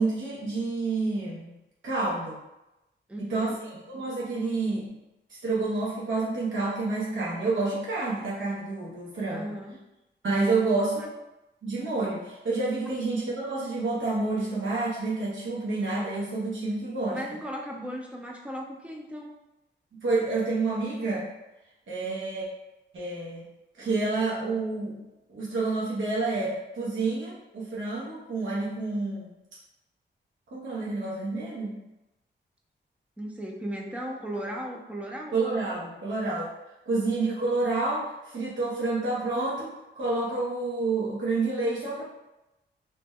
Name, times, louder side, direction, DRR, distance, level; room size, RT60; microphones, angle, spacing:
voice 1, 0.0-1.5 1.8-2.4 3.2-4.9 5.3-9.5 10.2-11.1 11.6-17.2 19.9-21.3 21.9-22.5 22.9-23.5 23.8-25.0 25.3-29.3 30.5-31.8 35.3-36.5 36.9-42.0, right 3 dB, 90° right, -7 dB, 0.9 m, -29 dB
voice 2, 3.1-3.6 9.3-9.8 11.0-11.1 17.1-19.3 33.2-35.4, equal, 5° right, 0 dB, 0.4 m, -36 dB
2.9 x 2.1 x 3.5 m, 0.94 s
wide cardioid pair, 165°, 20 cm